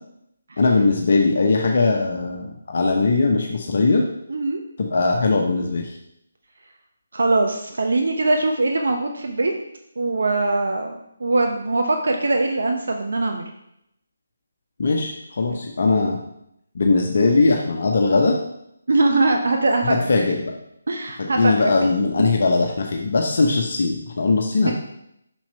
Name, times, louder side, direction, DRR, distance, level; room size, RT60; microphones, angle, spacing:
voice 1, 0.6-4.0 4.8-5.9 14.8-16.2 16.7-18.4 19.8-20.5 21.2-24.7, left 3 dB, 50° left, 2 dB, 0.9 m, -20 dB
voice 2, 4.3-4.6 7.1-9.5 10.0-10.9 11.2-13.5 15.5-15.6 18.9-20.1 20.9-21.7 24.6-24.7, right 2 dB, 60° right, 3 dB, 0.9 m, -21 dB
6.4 x 5.8 x 5.5 m, 0.78 s
figure-of-eight pair, 150°, 0 cm